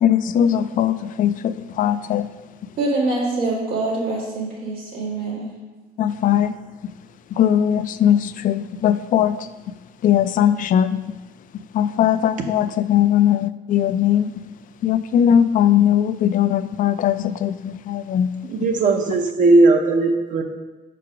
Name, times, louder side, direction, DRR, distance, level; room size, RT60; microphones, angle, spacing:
voice 1, 0.0-2.3 6.0-6.5 7.3-9.4 10.0-11.0 11.7-14.3 14.8-18.3, left 10 dB, 50° left, 0.4 m, -19 dB
voice 2, 2.8-5.5, right 2 dB, 85° right, 2.0 m, -24 dB
voice 3, 18.5-20.4, right 3 dB, 50° right, 0.7 m, -17 dB
4.9 x 4.6 x 6.0 m
cardioid pair, 110°, 17 cm